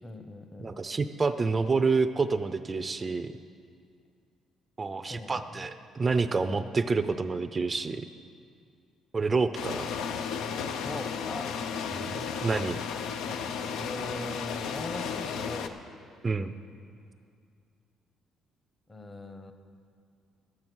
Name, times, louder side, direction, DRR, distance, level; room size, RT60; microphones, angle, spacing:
voice 1, 0.0-0.7 5.1-5.7 10.8-11.8 13.8-15.8 18.9-19.5, left 2 dB, 25° left, 7 dB, 1.0 m, -41 dB
voice 2, 0.6-3.3 4.8-8.1 9.1-9.9 11.9-12.8 16.2-16.5, right 4 dB, 30° right, 11 dB, 0.5 m, -28 dB
sound 1, 9.5-15.7, left 6 dB, 80° left, 0.6 m, -34 dB
13.0 x 8.7 x 6.2 m, 2.3 s
cardioid pair, 95°, 0 cm